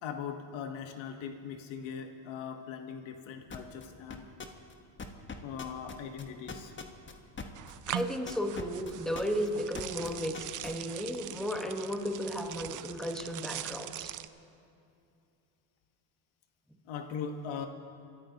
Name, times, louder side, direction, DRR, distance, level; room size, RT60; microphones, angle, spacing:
voice 1, 0.0-4.3 5.4-6.7 16.8-17.7, left 7 dB, 70° left, 6 dB, 1.4 m, -40 dB
sound 1, 3.5-3.9 4.1-4.7 5.0-10.7, left 5 dB, 25° left, 1.2 m, -41 dB
sound 2, 7.5-14.3, right 12 dB, 40° right, 0.5 m, -42 dB
voice 2, 7.9-14.1, equal, ahead, 3 dB, 1.3 m, -34 dB
27.0 x 13.5 x 2.9 m, 2.6 s
supercardioid pair, 100°, 48 cm